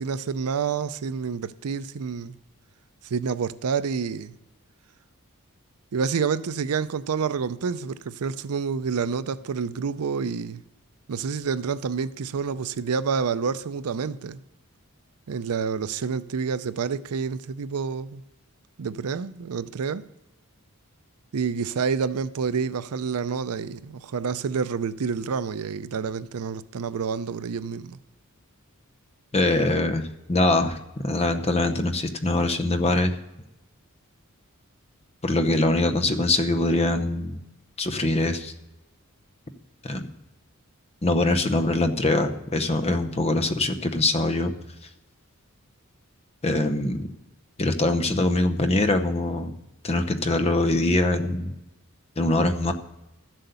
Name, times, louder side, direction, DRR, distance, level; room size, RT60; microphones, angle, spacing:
voice 1, 0.0-2.4 3.0-4.4 5.9-10.6 11.1-14.4 15.3-18.2 18.8-20.1 21.3-28.0, right 5 dB, 80° right, 0.5 m, -28 dB
voice 2, 29.3-30.8 31.0-33.2 35.2-37.4 37.8-38.5 39.8-40.0 41.0-44.5 46.4-47.1 47.6-49.5 49.8-51.5 52.2-52.7, left 2 dB, 30° left, 0.8 m, -23 dB
13.0 x 7.7 x 6.9 m
head